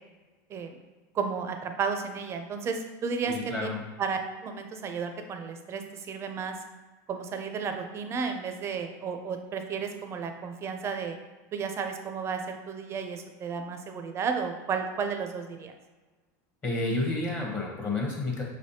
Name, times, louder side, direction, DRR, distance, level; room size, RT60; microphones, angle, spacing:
voice 1, 1.1-3.7 4.0-6.5 7.1-11.2 11.5-15.7, right 5 dB, 30° right, 6 dB, 0.4 m, -33 dB
voice 2, 3.3-3.8 16.6-18.4, left 2 dB, 20° left, -2 dB, 0.8 m, -30 dB
4.9 x 3.3 x 2.7 m, 1.2 s
supercardioid pair, 135°, 10 cm